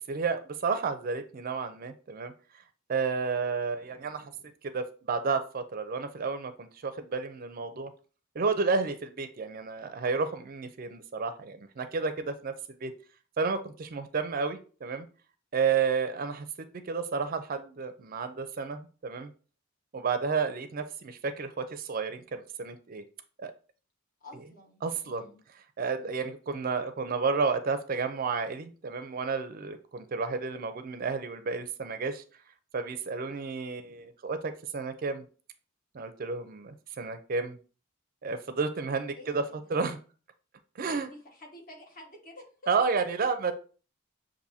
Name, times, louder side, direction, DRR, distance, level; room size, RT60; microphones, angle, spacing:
voice 1, 0.1-2.3 2.9-4.3 4.6-7.9 8.3-12.5 12.8-12.9 13.4-15.1 15.5-19.3 19.9-23.0 23.4-23.5 24.8-25.3 25.8-32.2 32.7-35.2 35.9-37.6 38.2-39.4 39.7-40.0 40.8-41.1 42.7-43.5, right 5 dB, 45° right, 10 dB, 0.4 m, -31 dB
voice 2, 24.2-25.4 26.0-26.3 39.2-39.7 40.9-42.5 42.8-42.9, left 2 dB, 45° left, 1 dB, 1.3 m, -50 dB
6.8 x 2.6 x 2.7 m, 0.37 s
head